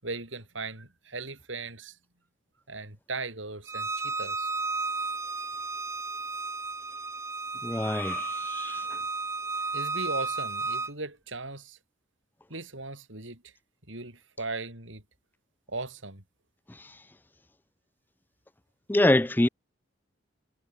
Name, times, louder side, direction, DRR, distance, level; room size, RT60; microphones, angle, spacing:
voice 1, 0.0-2.0 2.7-4.5 9.7-11.8 12.5-13.4 13.9-15.0 15.7-16.2, right 3 dB, 85° right, 7.0 m, -38 dB
Bowed string instrument, 3.7-10.9, right 3 dB, 15° right, 4.1 m, -33 dB
voice 2, 7.6-8.8 18.9-19.5, left 1 dB, 10° left, 0.4 m, -25 dB
head